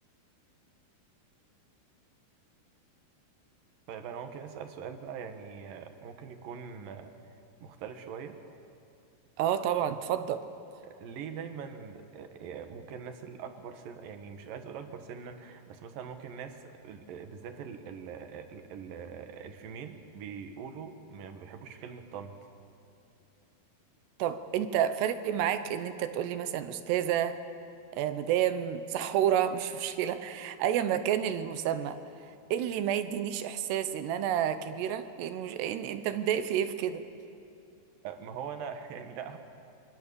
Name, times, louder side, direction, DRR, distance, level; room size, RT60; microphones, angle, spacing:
voice 1, 3.9-7.1 7.6-8.4 10.8-22.4 38.0-39.4, right 7 dB, 65° right, 6 dB, 2.8 m, -42 dB
voice 2, 9.4-10.4 24.2-27.4 27.9-37.0, right 10 dB, 85° right, 10 dB, 3.1 m, -30 dB
28.0 x 23.5 x 6.9 m, 2.6 s
omnidirectional pair, 4.8 m